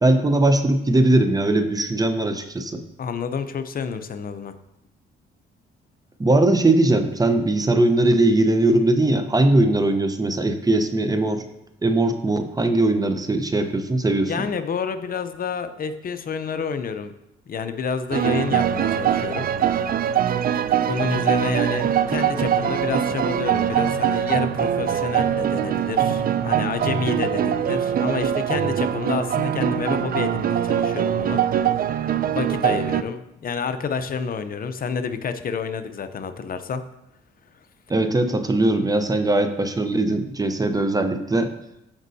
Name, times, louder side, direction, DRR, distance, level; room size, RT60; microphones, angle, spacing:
voice 1, 0.0-2.8 6.2-11.4 11.8-14.5 37.9-41.5, right 2 dB, 20° right, 8 dB, 0.7 m, -20 dB
voice 2, 3.0-4.5 14.3-17.1 17.5-19.5 20.9-31.4 32.3-36.8, left 6 dB, 45° left, 9 dB, 0.7 m, -29 dB
sound 1, 18.1-33.0, right 9 dB, 50° right, 0.4 m, -22 dB
15.0 x 5.3 x 2.7 m, 0.88 s
cardioid pair, 90°, 20 cm